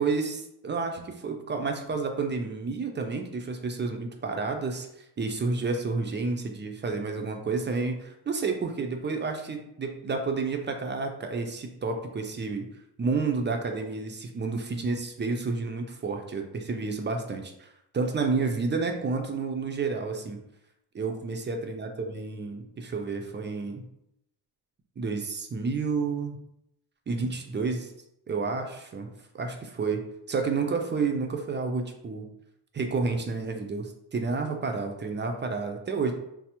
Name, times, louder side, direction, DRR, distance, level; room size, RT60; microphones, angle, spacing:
voice 1, 0.0-4.9 5.2-12.7 13.0-20.4 20.9-23.8 25.0-26.4 27.1-27.9 28.3-29.1 29.3-30.0 30.3-32.3 32.7-36.1, right 4 dB, 25° right, 4 dB, 0.4 m, -30 dB
3.3 x 2.0 x 2.8 m, 0.80 s
cardioid pair, 100°, 44 cm